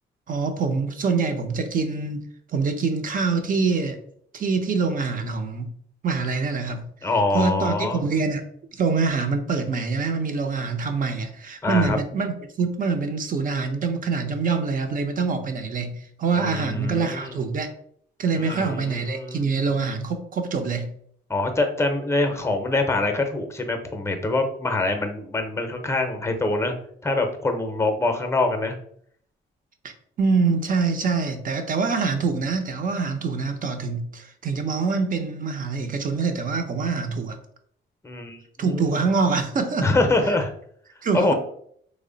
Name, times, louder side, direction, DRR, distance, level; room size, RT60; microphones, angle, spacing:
voice 1, 0.3-2.2 2.5-4.0 4.3-5.7 6.0-6.9 7.3-8.4 8.7-12.3 12.6-17.7 18.2-20.9 29.8-37.4 38.6-39.9 41.0-41.3, right 4 dB, 45° right, 6 dB, 0.6 m, -25 dB
voice 2, 7.0-8.0 11.6-12.0 16.3-17.4 18.4-19.5 21.3-26.7 27.0-28.8 38.0-39.0 39.8-40.5 41.1-41.3, left 2 dB, 15° left, 6 dB, 0.6 m, -24 dB
3.2 x 2.1 x 3.8 m, 0.64 s
cardioid pair, 90°, 20 cm